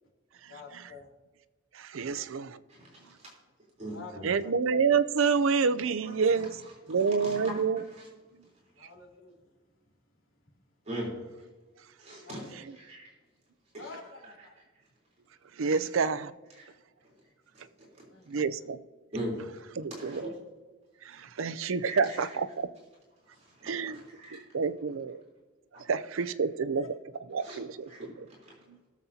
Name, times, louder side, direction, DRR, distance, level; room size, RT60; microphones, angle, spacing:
voice 1, 0.5-1.1 2.0-2.1 3.9-4.5 8.8-9.6 10.4-10.6 12.2-12.5 13.8-14.6 18.1-18.4 26.7-26.9 27.4-27.5, left 4 dB, 85° left, -2 dB, 2.8 m, -48 dB
voice 2, 1.7-2.6 4.2-6.5 6.9-7.8 15.6-16.3 18.3-18.8 19.8-20.2 21.0-22.7 23.6-24.0 24.3-25.2 25.9-26.8 27.3-27.9 28.2-28.3 28.7-28.8, right 5 dB, 75° right, 12 dB, 0.5 m, -28 dB
voice 3, 2.7-3.3 3.8-4.3 6.0-6.1 6.6-7.6 8.0-8.1 10.9-11.1 12.0-12.4 12.8-13.1 13.7-13.8 15.7-15.8 16.6-16.7 17.5-17.6 17.9-18.0 19.1-19.5 19.9-20.3 21.8-22.2 23.3-24.5 25.7-25.8 27.4-27.6 27.9-28.5, right 1 dB, 35° right, -4 dB, 3.6 m, -41 dB
20.5 x 7.3 x 2.8 m, 1.3 s
head